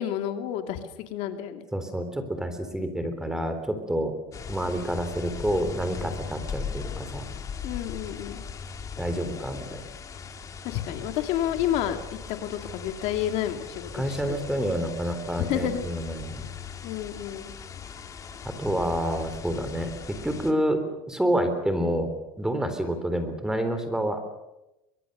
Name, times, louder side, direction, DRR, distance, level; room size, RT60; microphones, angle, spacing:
voice 1, 0.0-1.6 7.6-8.4 10.6-14.4 15.5-15.8 16.8-17.6, left 11 dB, 60° left, 7 dB, 2.4 m, -30 dB
voice 2, 1.7-4.1 4.5-7.3 9.0-9.8 13.9-16.5 18.4-20.8 21.1-22.1 22.4-24.2, equal, 5° right, 8 dB, 3.6 m, -28 dB
sound 1, 4.3-20.5, left 6 dB, 25° left, 2.5 m, -39 dB
24.0 x 23.5 x 6.7 m, 0.96 s
supercardioid pair, 130°, 12 cm